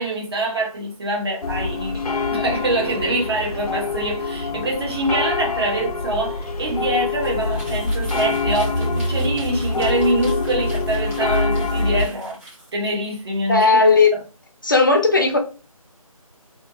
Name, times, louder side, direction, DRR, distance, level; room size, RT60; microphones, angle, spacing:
voice 1, 0.0-2.0 2.3-12.4 12.7-13.7 14.1-14.2, right 2 dB, 45° right, 0.7 m, -24 dB
sound 1, 1.4-12.1, left 3 dB, 90° left, 0.5 m, -24 dB
sound 2, 7.1-12.7, right 1 dB, 20° right, 1.0 m, -43 dB
voice 2, 13.5-14.1 14.6-15.4, left 3 dB, 35° left, 0.4 m, -15 dB
2.2 x 2.1 x 2.8 m
figure-of-eight pair, 160°, 19 cm